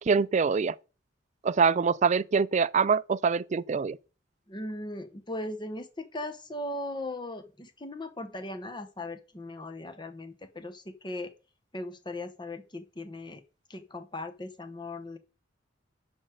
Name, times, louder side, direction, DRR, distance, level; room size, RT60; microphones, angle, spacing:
voice 1, 0.1-0.7 1.4-4.0, right 5 dB, 40° right, 0.4 m, -24 dB
voice 2, 4.5-11.3 11.7-13.4 13.7-15.2, left 1 dB, 25° left, 1.1 m, -38 dB
9.7 x 4.5 x 6.4 m
head